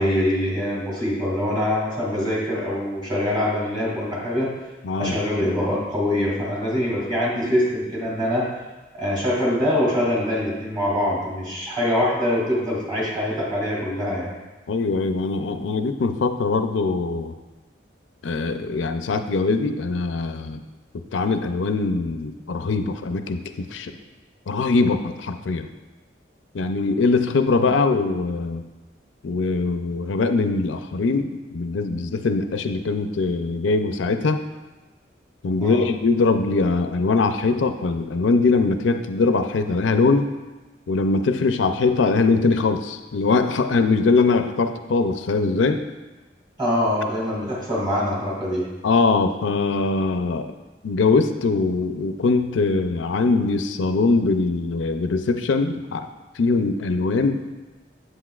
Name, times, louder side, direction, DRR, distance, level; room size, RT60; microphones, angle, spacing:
voice 1, 0.0-4.5 5.0-8.5 8.9-14.3 35.6-35.9 46.6-48.7, left 1 dB, 25° right, -5 dB, 2.4 m, -24 dB
voice 2, 4.8-5.2 14.7-17.3 18.2-20.6 21.1-23.9 24.5-25.7 26.5-28.6 29.2-34.4 35.4-40.3 40.9-45.8 48.8-50.5 50.8-56.1 56.4-57.4, left 3 dB, 90° left, 8 dB, 0.5 m, -22 dB
8.0 x 7.9 x 2.4 m, 1.1 s
head